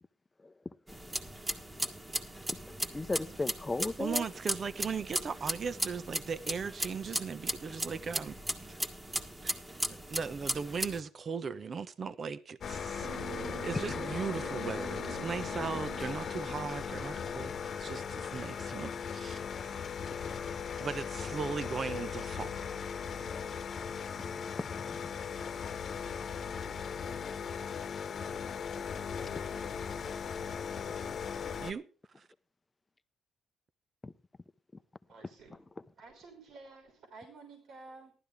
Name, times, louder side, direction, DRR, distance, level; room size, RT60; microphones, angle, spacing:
voice 1, 0.4-0.7 1.1-1.2 2.5-2.6 2.9-4.3 13.9-14.0 24.2-25.1 34.0-34.1 35.2-35.8, left 2 dB, 20° left, 0.7 m, -38 dB
sound 1, 0.9-11.0, right 1 dB, 20° right, 1.8 m, -37 dB
voice 2, 4.0-8.4 9.4-9.5 10.1-13.1 13.6-17.5 17.8-19.4 20.8-22.6 31.6-31.8 32.2-32.3, right 5 dB, 45° right, 0.9 m, -38 dB
sound 2, 12.6-31.7, left 6 dB, 50° left, 1.1 m, -38 dB
sound 3, 13.0-18.3, right 5 dB, 90° right, 3.9 m, -46 dB
voice 3, 35.1-35.5 36.0-38.1, right 3 dB, 70° right, 3.3 m, -52 dB
15.0 x 12.0 x 3.4 m
cardioid pair, 90°, 0 cm